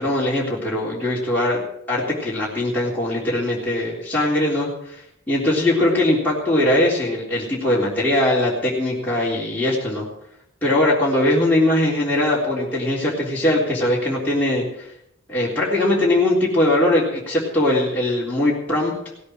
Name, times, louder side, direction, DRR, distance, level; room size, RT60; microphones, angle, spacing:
voice 1, 0.0-1.6 1.9-5.0 5.3-10.0 10.6-14.6 15.3-18.9, left 1 dB, 10° left, -8 dB, 3.5 m, -20 dB
17.5 x 8.5 x 7.7 m, 0.77 s
head